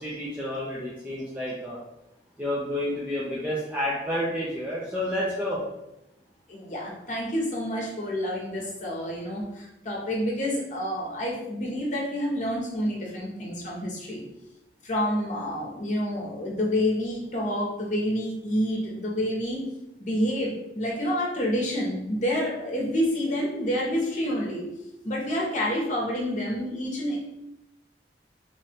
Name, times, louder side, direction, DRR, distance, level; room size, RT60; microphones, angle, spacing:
voice 1, 0.0-1.8 2.4-5.6, left 1 dB, 10° right, -7 dB, 0.6 m, -30 dB
voice 2, 6.5-14.2 14.8-19.6 20.0-24.6 25.0-27.2, equal, 45° left, -2 dB, 1.0 m, -28 dB
3.1 x 2.5 x 4.2 m, 0.87 s
head